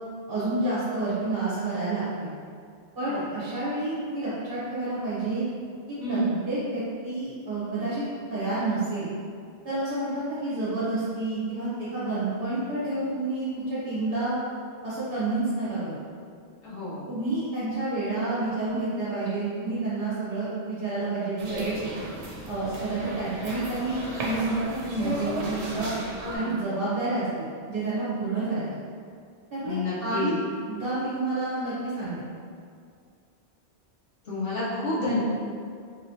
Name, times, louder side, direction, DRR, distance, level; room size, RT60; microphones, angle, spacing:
voice 1, 0.3-2.3 2.9-5.4 5.9-8.0 8.3-9.1 9.6-14.4 14.8-16.0 17.1-21.8 22.5-25.9 26.3-28.7 29.5-30.3 30.7-32.3, right 2 dB, 55° right, -10 dB, 1.1 m, -29 dB
voice 2, 6.0-6.4 16.6-17.1 26.2-26.7 29.6-30.4 34.2-35.2, left 1 dB, 80° left, -9 dB, 1.3 m, -29 dB
sound 1, 21.4-26.4, right 1 dB, 80° right, 0.9 m, -35 dB
3.6 x 3.0 x 2.7 m, 2.3 s
omnidirectional pair, 1.2 m